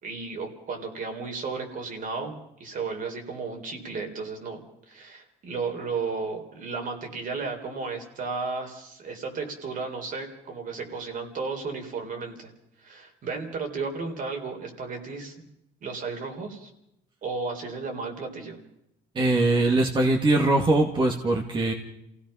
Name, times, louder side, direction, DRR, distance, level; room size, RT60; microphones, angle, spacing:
voice 1, 0.0-12.5 12.8-15.3 15.8-16.7 17.2-18.6, right 4 dB, 55° right, 4 dB, 3.9 m, -34 dB
voice 2, 19.2-21.7, right 2 dB, 30° right, 2 dB, 2.1 m, -22 dB
28.0 x 17.0 x 5.7 m, 0.82 s
cardioid pair, 110°, 17 cm